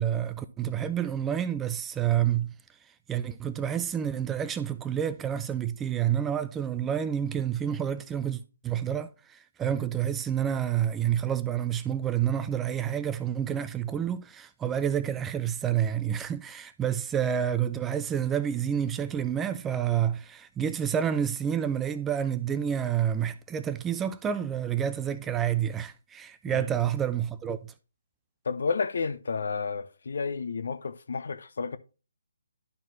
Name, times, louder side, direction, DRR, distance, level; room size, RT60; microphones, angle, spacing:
voice 1, 0.0-2.5 3.1-27.7, right 9 dB, 10° right, 0.3 m, -29 dB
voice 2, 28.5-31.8, left 5 dB, 60° left, 0.6 m, -31 dB
11.5 x 4.5 x 2.7 m
figure-of-eight pair, 140°, 0 cm